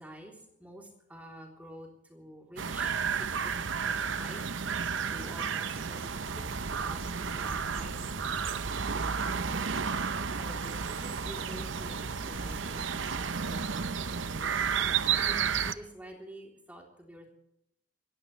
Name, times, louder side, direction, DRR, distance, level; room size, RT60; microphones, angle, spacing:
voice 1, 0.0-6.4 6.8-8.3 8.7-9.6 10.3-17.3, equal, 10° right, 0 dB, 3.4 m, -49 dB
sound 1, 2.6-15.7, right 6 dB, 75° right, 0.8 m, -32 dB
sound 2, 5.0-13.0, right 2 dB, 50° right, 1.8 m, -51 dB
sound 3, 6.1-15.6, equal, 35° right, 2.0 m, -48 dB
28.5 x 15.5 x 3.3 m, 0.78 s
head